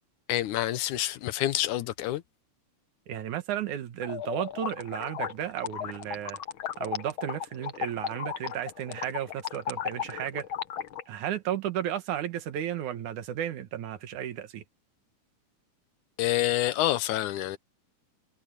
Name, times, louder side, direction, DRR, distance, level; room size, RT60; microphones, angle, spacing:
voice 1, 0.3-2.2 16.2-17.6, left 14 dB, 80° left, 2.3 m, -27 dB
voice 2, 3.1-6.4 6.8-10.5 11.1-14.6, right 10 dB, 80° right, 2.8 m, -33 dB
sound 1, 4.0-11.0, left 9 dB, 55° left, 1.5 m, -35 dB
omnidirectional pair, 3.5 m